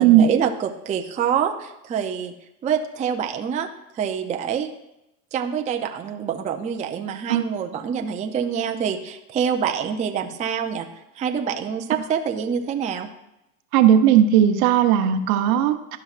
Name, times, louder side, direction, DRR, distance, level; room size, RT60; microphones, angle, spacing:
voice 1, 0.0-2.3 2.6-3.7 3.9-4.7 5.3-10.9 11.2-13.1, right 7 dB, 20° right, 4 dB, 0.4 m, -26 dB
voice 2, 13.7-16.0, right 10 dB, 70° right, 7 dB, 0.8 m, -16 dB
12.0 x 5.7 x 2.4 m, 0.89 s
supercardioid pair, 110°, 44 cm